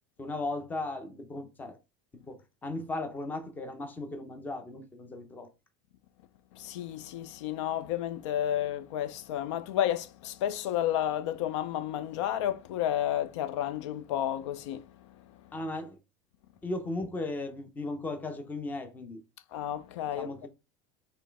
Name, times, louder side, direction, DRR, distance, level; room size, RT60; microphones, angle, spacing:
voice 1, 0.2-1.8 2.3-5.5 15.5-16.0 16.6-19.2 20.1-20.5, left 2 dB, 10° left, 0.6 m, -36 dB
voice 2, 6.5-15.2 19.5-20.5, left 11 dB, 80° left, 0.5 m, -31 dB
4.1 x 3.2 x 3.4 m
supercardioid pair, 160°, 15 cm